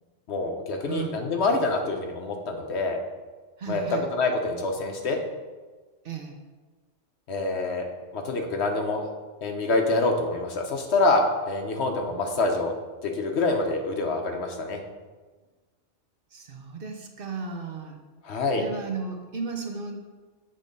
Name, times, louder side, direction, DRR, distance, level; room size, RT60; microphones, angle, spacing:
voice 1, 0.3-3.0 3.7-5.2 7.3-7.9 8.1-9.1 9.4-12.7 13.0-14.8 18.2-18.6, left 3 dB, 65° left, 3 dB, 1.1 m, -26 dB
voice 2, 0.9-1.2 3.6-4.1 6.0-6.3 16.3-18.0 18.6-20.0, right 4 dB, 55° right, 3 dB, 0.9 m, -34 dB
7.5 x 3.7 x 5.3 m, 1.3 s
omnidirectional pair, 1.2 m